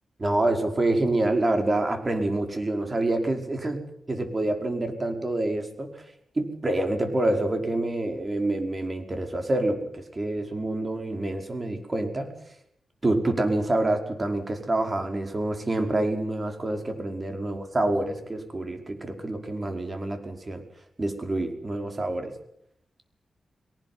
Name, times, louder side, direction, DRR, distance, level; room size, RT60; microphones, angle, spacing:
voice 1, 0.2-6.0 6.3-12.3 13.0-20.6 21.0-22.3, right 2 dB, 30° right, 5 dB, 5.1 m, -27 dB
22.5 x 19.0 x 9.6 m, 0.70 s
wide cardioid pair, 100°, 0 cm